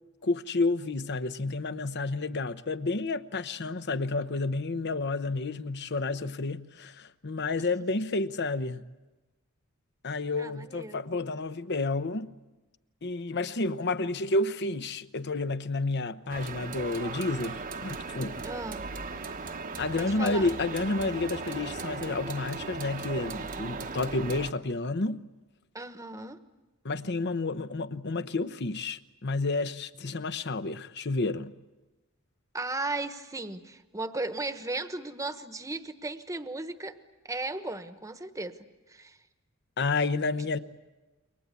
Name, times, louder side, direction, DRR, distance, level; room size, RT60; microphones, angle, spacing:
voice 1, 0.2-8.8 10.0-12.3 13.0-18.4 19.8-25.2 26.8-31.5 39.8-40.6, left 3 dB, 50° left, 0.9 m, -30 dB
voice 2, 10.4-11.0 18.4-18.9 20.0-20.5 25.7-26.4 32.5-37.0 37.2-38.6 38.9-39.2, right 2 dB, 15° right, 1.2 m, -36 dB
sound 1, 16.3-24.5, right 4 dB, 40° right, 1.1 m, -37 dB
29.0 x 23.5 x 8.3 m
head